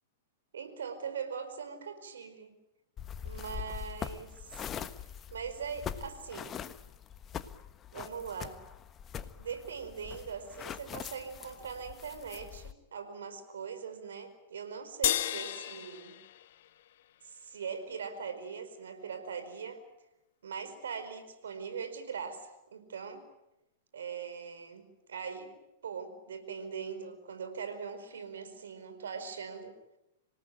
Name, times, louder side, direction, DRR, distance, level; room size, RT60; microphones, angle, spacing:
voice 1, 0.5-2.5 3.2-4.6 5.3-6.5 7.9-8.6 9.3-16.2 17.2-19.8 20.4-23.2 23.9-25.5 25.8-29.7, right 6 dB, 75° right, 9 dB, 4.8 m, -41 dB
sound 1, 3.0-12.7, left 8 dB, 25° left, 1.3 m, -43 dB
sound 2, 15.0-17.6, left 13 dB, 60° left, 1.1 m, -34 dB
26.5 x 18.0 x 9.2 m, 0.92 s
hypercardioid pair, 105°, 0 cm